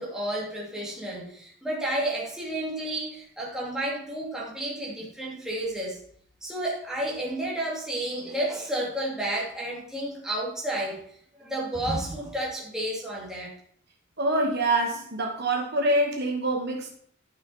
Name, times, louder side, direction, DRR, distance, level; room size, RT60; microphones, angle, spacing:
voice 1, 0.0-6.0 6.4-11.0 11.4-13.5, right 1 dB, 5° right, -4 dB, 2.4 m, -31 dB
voice 2, 14.2-16.9, right 1 dB, 50° right, 0 dB, 1.9 m, -25 dB
13.5 x 5.9 x 4.2 m, 0.63 s
head